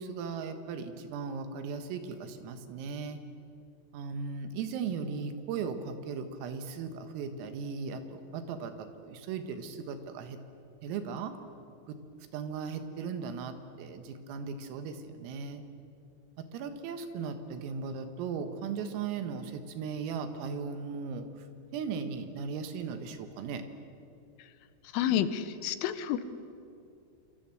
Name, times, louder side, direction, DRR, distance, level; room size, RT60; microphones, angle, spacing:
voice 1, 0.0-3.2 3.9-10.4 10.8-11.4 11.9-12.0 12.3-15.6 16.4-21.5 21.7-23.6, right 5 dB, 85° right, 8 dB, 4.3 m, -37 dB
voice 2, 24.9-26.2, left 10 dB, 75° left, 12 dB, 3.4 m, -29 dB
27.0 x 26.5 x 7.9 m, 2.5 s
omnidirectional pair, 5.8 m